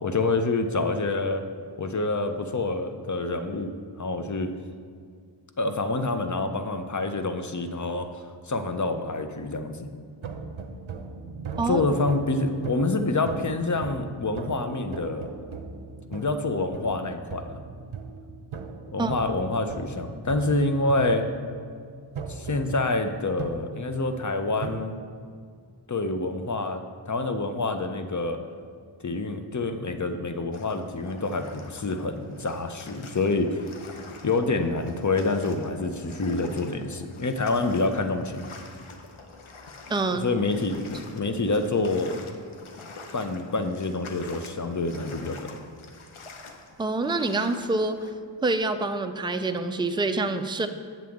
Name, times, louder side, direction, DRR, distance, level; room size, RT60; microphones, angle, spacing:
voice 1, 0.0-1.4 1.8-3.7 4.0-4.5 5.6-8.1 8.4-9.9 11.7-15.3 16.1-17.6 18.9-21.2 22.3-24.9 25.9-28.4 29.0-33.7 34.2-38.4 40.1-42.2 43.1-45.6, left 3 dB, 40° left, 7 dB, 0.6 m, -27 dB
sound 1, 10.2-24.8, right 4 dB, 75° right, 0.7 m, -39 dB
sound 2, 30.5-48.1, left 3 dB, 85° left, 0.8 m, -46 dB
voice 2, 39.9-40.3 46.8-48.0 48.4-50.7, right 3 dB, 10° right, 8 dB, 0.3 m, -26 dB
7.6 x 7.3 x 3.6 m, 2.1 s
wide cardioid pair, 45°, 48 cm